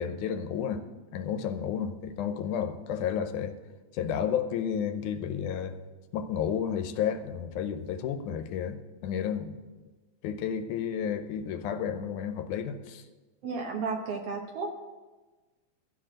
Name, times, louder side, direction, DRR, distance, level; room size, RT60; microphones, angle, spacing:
voice 1, 0.0-3.6 3.9-5.7 6.1-9.6 10.2-13.0, left 8 dB, 85° left, 9 dB, 2.2 m, -32 dB
voice 2, 13.4-14.8, right 4 dB, 65° right, 3 dB, 1.6 m, -33 dB
13.5 x 4.7 x 7.4 m, 1.2 s
omnidirectional pair, 3.5 m